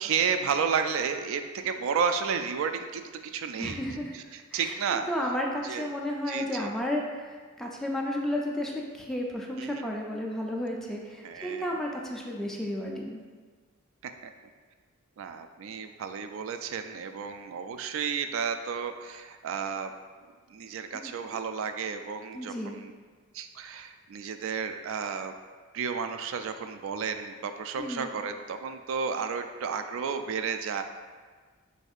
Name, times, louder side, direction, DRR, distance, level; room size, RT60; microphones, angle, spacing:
voice 1, 0.0-3.8 4.1-5.1 5.6-5.9 6.3-6.7 9.6-9.8 11.2-11.8 14.0-14.3 15.2-19.9 20.5-22.9 23.3-25.3 25.7-30.8, right 6 dB, 70° right, 8 dB, 0.3 m, -32 dB
voice 2, 3.6-4.1 4.5-13.2 20.9-21.0 22.3-22.8 27.8-28.1, left 1 dB, ahead, -2 dB, 0.4 m, -33 dB
6.3 x 2.7 x 2.4 m, 1.5 s
head